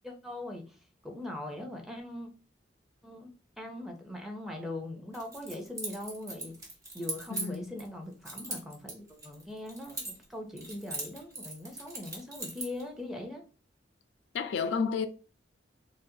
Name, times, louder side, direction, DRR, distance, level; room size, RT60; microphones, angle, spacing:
voice 1, 0.0-0.8 1.0-2.3 3.0-3.3 3.6-6.5 6.9-13.4, left 1 dB, ahead, 0.5 m, -41 dB
Keys jangling, 5.1-7.9 8.2-10.3 10.6-12.8, right 2 dB, 20° right, 1.2 m, -39 dB
voice 2, 7.3-7.7 14.3-15.1, left 5 dB, 70° left, 0.3 m, -31 dB
3.9 x 2.1 x 2.7 m
head